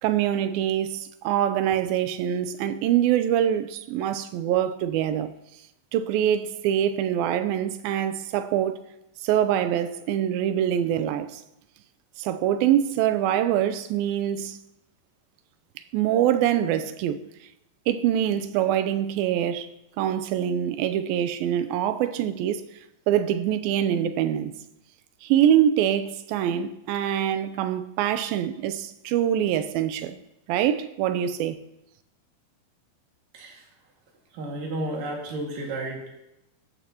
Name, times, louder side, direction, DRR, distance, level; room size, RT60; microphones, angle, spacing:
voice 1, 0.0-5.3 5.9-8.8 9.2-11.4 12.2-14.6 15.9-17.2 17.9-19.7 20.0-22.6 23.1-24.5 25.2-30.2 30.5-31.6, right 10 dB, 85° right, 2.5 m, -24 dB
voice 2, 34.3-36.1, right 1 dB, 70° right, 3.6 m, -32 dB
15.5 x 12.5 x 2.9 m
omnidirectional pair, 4.1 m